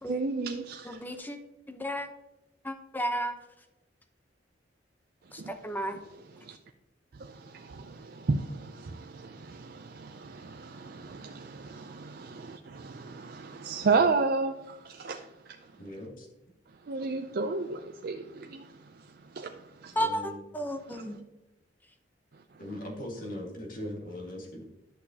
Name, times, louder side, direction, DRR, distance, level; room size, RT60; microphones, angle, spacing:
voice 1, 0.0-1.0 5.4-5.5 6.4-6.6 7.1-15.6 16.9-20.0 20.9-21.0, right 4 dB, 55° right, 0.5 m, -33 dB
voice 2, 0.8-1.4 1.7-2.1 2.6-3.3 5.3-6.0 20.0-21.2, equal, 10° left, 0.8 m, -33 dB
voice 3, 15.7-16.3 19.9-20.4 22.6-24.6, left 1 dB, 50° left, 1.9 m, -40 dB
11.0 x 6.5 x 2.8 m
head